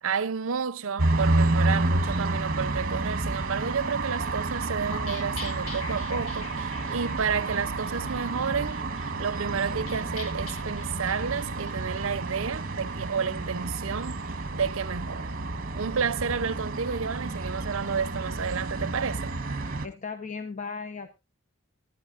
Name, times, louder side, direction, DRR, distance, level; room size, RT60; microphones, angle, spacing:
voice 1, 0.0-8.9 9.2-14.2 14.5-15.4 15.7-19.4, right 6 dB, 65° right, 0.6 m, -31 dB
sound 1, 1.0-19.9, right 2 dB, 40° right, 1.2 m, -30 dB
sound 2, 4.9-14.4, left 3 dB, 85° left, 1.5 m, -44 dB
voice 2, 19.8-21.1, left 5 dB, 35° left, 0.8 m, -36 dB
18.5 x 11.5 x 2.5 m
head